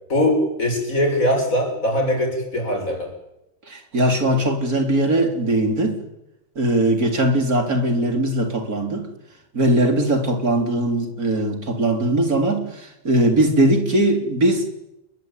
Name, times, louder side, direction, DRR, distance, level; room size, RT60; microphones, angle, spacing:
voice 1, 0.1-3.1, left 1 dB, 65° left, 2 dB, 7.6 m, -21 dB
voice 2, 3.7-6.0 6.6-9.1 9.5-14.7, right 1 dB, 85° right, 5 dB, 4.3 m, -20 dB
29.0 x 22.0 x 9.2 m, 0.90 s
omnidirectional pair, 1.5 m